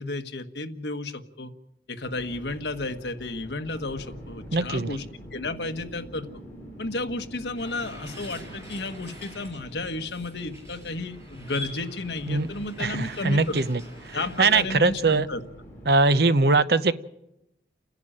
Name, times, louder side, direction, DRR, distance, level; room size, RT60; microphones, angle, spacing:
voice 1, 0.0-1.5 1.9-5.0 5.3-6.3 6.8-13.6 14.1-15.4, left 2 dB, 75° left, 7 dB, 1.4 m, -32 dB
sound 1, 2.0-15.9, right 1 dB, 15° left, 4.7 m, -45 dB
voice 2, 4.5-5.0 12.3-12.5 12.8-13.8 14.4-15.3 15.9-16.9, right 3 dB, 65° right, 13 dB, 0.8 m, -21 dB
sound 2, 7.6-14.6, left 1 dB, 15° right, 6.5 m, -45 dB
30.0 x 10.5 x 8.8 m, 0.87 s
head